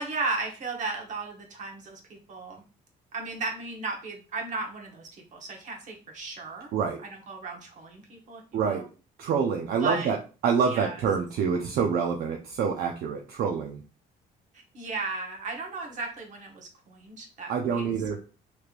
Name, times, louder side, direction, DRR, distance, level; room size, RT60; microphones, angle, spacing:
voice 1, 0.0-2.6 3.1-6.7 7.0-8.8 9.8-10.1 10.7-11.0 14.5-17.9, right 3 dB, 45° right, 1 dB, 1.1 m, -35 dB
voice 2, 8.5-8.9 9.2-10.2 10.4-13.8 17.5-18.2, right 6 dB, 65° right, 2 dB, 0.5 m, -26 dB
3.3 x 3.0 x 2.4 m, 0.33 s
cardioid pair, 110°, 17 cm